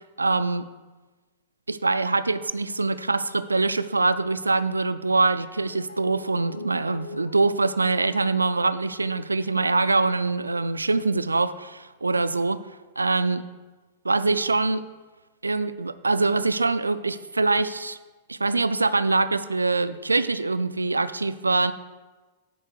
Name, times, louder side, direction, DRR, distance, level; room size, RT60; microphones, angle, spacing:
voice 1, 0.2-0.7 1.7-12.6 13.0-13.4 14.0-14.8 15.4-18.0 18.3-21.7, right 3 dB, 85° right, 13 dB, 0.3 m, -24 dB
Guitar, 5.2-12.2 12.6-12.7, left 6 dB, 75° left, 0.5 m, -46 dB
7.7 x 4.7 x 6.5 m, 1.2 s
figure-of-eight pair, 100°, 0 cm